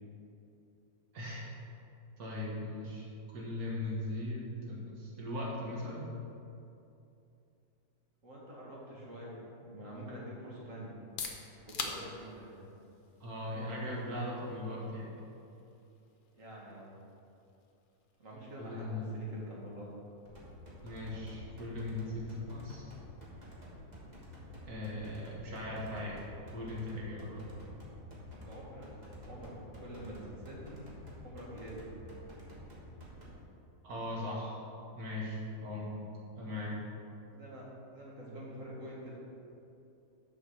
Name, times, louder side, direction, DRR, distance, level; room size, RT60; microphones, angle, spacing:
voice 1, 1.1-1.5 2.2-3.1 3.3-6.1 13.2-15.1 18.6-19.1 20.8-22.9 24.7-26.1 26.5-27.4 33.8-34.6 34.9-35.9 36.4-36.8, left 1 dB, 85° right, -4 dB, 2.1 m, -39 dB
voice 2, 8.2-11.0 11.5-12.7 16.3-17.0 18.2-19.9 28.4-28.9 29.2-30.8 31.2-31.9 37.3-37.7 37.9-39.2, equal, 60° right, -5 dB, 2.1 m, -46 dB
sound 1, 10.9-26.5, left 4 dB, 50° left, 0.7 m, -50 dB
sound 2, 20.3-33.3, left 1 dB, 30° right, 1.4 m, -50 dB
6.5 x 5.2 x 6.5 m, 2.7 s
omnidirectional pair, 1.5 m